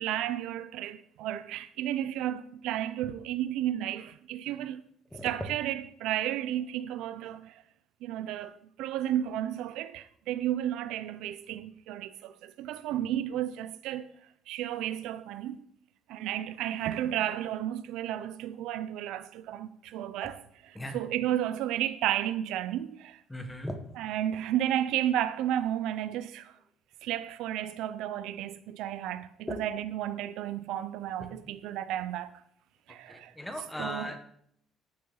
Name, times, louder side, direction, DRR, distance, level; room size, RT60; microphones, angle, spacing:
voice 1, 0.0-4.8 5.2-7.6 8.0-14.1 14.5-15.6 16.1-20.4 20.9-23.2 24.0-26.5 27.0-32.3 32.9-33.3 33.8-34.1, right 12 dB, 85° right, 0.5 m, -32 dB
voice 2, 5.1-5.8 20.2-20.3 20.7-21.0 23.3-24.0 29.5-29.6 31.2-31.3 32.9-34.2, left 1 dB, 5° left, 1.2 m, -38 dB
13.5 x 6.6 x 3.9 m
cardioid pair, 150°, 0 cm